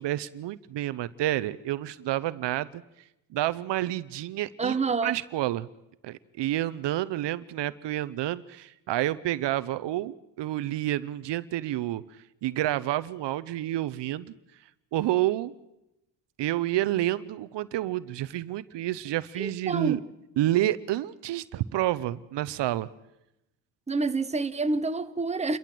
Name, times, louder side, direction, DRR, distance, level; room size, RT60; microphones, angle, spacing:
voice 1, 0.0-2.8 3.3-4.8 5.0-5.7 6.0-12.0 12.4-14.3 14.9-15.5 16.4-20.0 20.4-22.9, right 14 dB, 70° right, 0.8 m, -29 dB
voice 2, 4.6-5.2 19.4-20.0 23.9-25.6, right 3 dB, 15° right, 1.0 m, -28 dB
28.5 x 13.5 x 7.6 m
cardioid pair, 95°, 44 cm